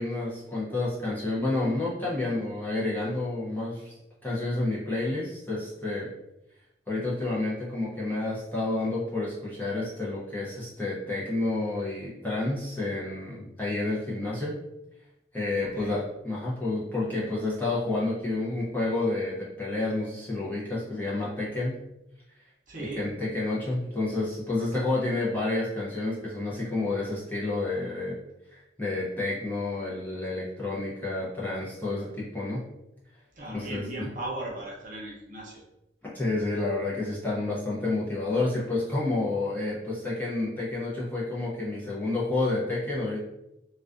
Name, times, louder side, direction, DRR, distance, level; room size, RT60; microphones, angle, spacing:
voice 1, 0.0-3.9 4.2-6.1 6.9-14.5 15.3-21.8 23.0-28.2 28.5-32.6 33.5-33.8 36.1-43.2, left 2 dB, 10° left, -7 dB, 0.5 m, -29 dB
voice 2, 15.5-16.0 22.7-23.1 33.3-35.6, right 1 dB, 45° right, -4 dB, 0.6 m, -37 dB
2.3 x 2.2 x 2.4 m, 0.88 s
head